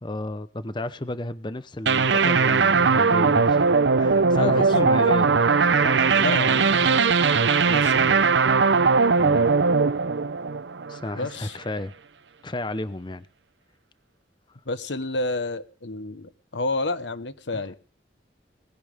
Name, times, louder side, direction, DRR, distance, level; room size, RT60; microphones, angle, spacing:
voice 1, 0.0-3.7 4.0-5.4 5.8-6.0 9.2-9.6 10.9-11.9 12.4-13.3 17.5-17.6, left 1 dB, 25° left, 0.8 m, -32 dB
sound 1, 1.9-11.2, right 4 dB, 85° right, 0.8 m, -19 dB
voice 2, 4.3-4.7 6.2-7.0 7.6-8.2 11.2-11.6 14.7-17.8, left 2 dB, 85° left, 1.3 m, -30 dB
20.0 x 16.0 x 3.6 m
head